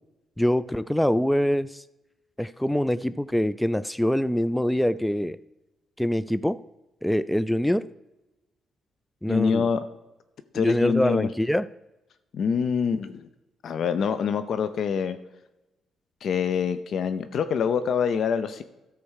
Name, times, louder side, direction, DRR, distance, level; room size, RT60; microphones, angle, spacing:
voice 1, 0.4-1.8 2.4-5.4 6.0-6.6 7.0-7.8 9.2-9.7 10.5-11.6, equal, 5° left, 16 dB, 0.3 m, -24 dB
voice 2, 9.3-9.9 10.5-11.3 12.3-13.3 13.6-15.2 16.2-18.6, left 6 dB, 60° left, 11 dB, 0.6 m, -25 dB
13.0 x 4.6 x 6.4 m, 0.97 s
cardioid pair, 90°, 0 cm